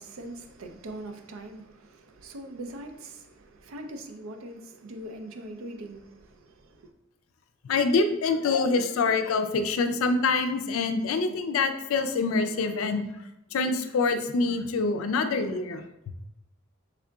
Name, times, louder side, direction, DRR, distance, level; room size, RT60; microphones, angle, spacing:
voice 1, 0.0-6.9, right 1 dB, 85° right, 0.5 m, -42 dB
voice 2, 7.6-13.1 13.5-15.8, left 4 dB, 80° left, 0.4 m, -25 dB
3.7 x 3.5 x 2.3 m
head